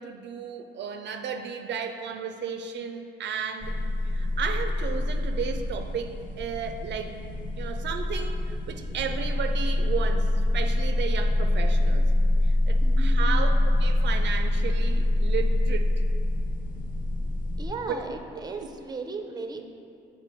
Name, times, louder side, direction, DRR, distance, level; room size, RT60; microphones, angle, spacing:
voice 1, 0.0-3.8 4.1-7.2 7.5-12.0 12.4-15.9 17.9-18.0 18.6-18.7, right 6 dB, 65° right, 6 dB, 0.4 m, -34 dB
sound 1, 3.6-17.7, left 1 dB, 40° left, 0.7 m, -25 dB
voice 2, 12.8-13.6 17.6-19.7, right 3 dB, 20° right, 5 dB, 0.6 m, -37 dB
6.8 x 4.3 x 4.4 m, 2.5 s
cardioid pair, 90°, 20 cm